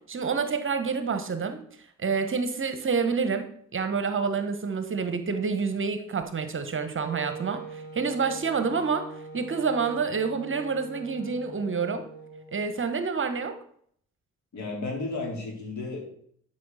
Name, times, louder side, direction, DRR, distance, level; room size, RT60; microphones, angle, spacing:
voice 1, 0.1-1.6 2.0-9.1 9.3-12.0 12.5-13.6, right 5 dB, 35° right, 10 dB, 1.1 m, -28 dB
Wind instrument woodwind instrument, 7.0-12.6, right 4 dB, 85° left, 2.9 m, -42 dB
voice 2, 14.5-16.0, left 3 dB, 50° left, -1 dB, 4.1 m, -33 dB
12.5 x 5.7 x 4.1 m, 0.63 s
figure-of-eight pair, 40°, 36 cm